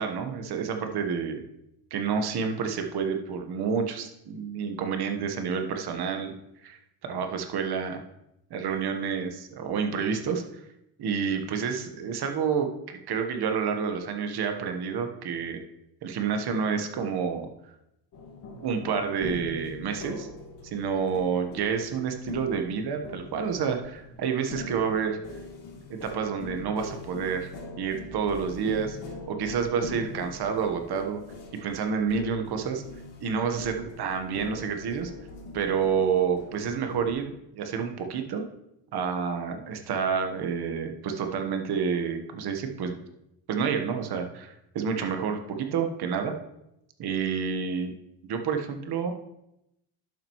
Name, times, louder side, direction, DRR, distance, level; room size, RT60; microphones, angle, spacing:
voice 1, 0.0-1.4 1.9-6.3 6.6-8.0 8.5-10.6 11.0-15.6 16.0-17.5 18.6-20.3 20.6-25.2 25.9-27.5 27.8-29.0 29.3-31.2 31.5-32.8 33.2-35.1 35.5-38.4 38.9-43.0 43.5-46.3 47.0-47.9 48.2-49.1, right 6 dB, 60° right, 6 dB, 1.3 m, -29 dB
sound 1, 18.1-37.1, left 2 dB, 65° left, 3.0 m, -42 dB
11.0 x 7.6 x 3.1 m, 0.84 s
cardioid pair, 115°, 44 cm